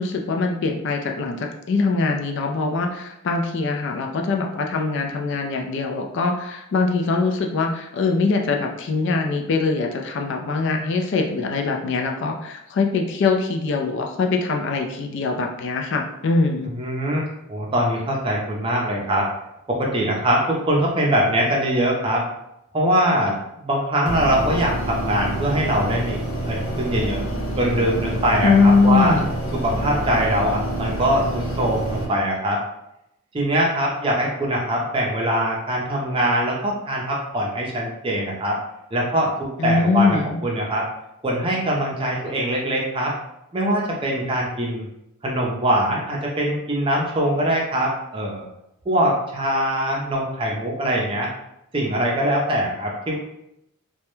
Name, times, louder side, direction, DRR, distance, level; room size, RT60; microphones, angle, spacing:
voice 1, 0.0-16.7 28.4-29.3 39.6-40.4, left 4 dB, 55° left, 2 dB, 0.3 m, -22 dB
voice 2, 16.6-17.2 17.5-19.3 19.7-22.2 22.7-27.3 27.6-29.1 29.5-32.6 33.3-38.6 38.9-40.9 41.2-43.1 43.5-44.9 45.2-48.4 48.9-51.3 51.7-53.2, right 1 dB, 25° right, -2 dB, 0.5 m, -22 dB
sound 1, 24.1-32.1, right 1 dB, 75° left, 0.7 m, -27 dB
2.2 x 2.1 x 3.0 m, 0.83 s
head